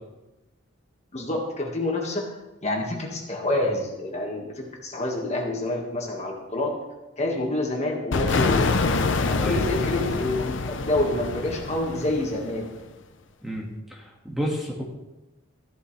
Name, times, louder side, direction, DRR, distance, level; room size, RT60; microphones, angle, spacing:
voice 1, 1.1-2.3 2.6-6.8 7.2-8.7 9.3-12.7, left 1 dB, 35° left, 0 dB, 1.7 m, -27 dB
sound 1, 8.1-12.8, left 3 dB, 65° left, 0.7 m, -26 dB
voice 2, 13.4-14.8, equal, ahead, -2 dB, 1.7 m, -31 dB
14.0 x 12.5 x 3.3 m, 1.0 s
head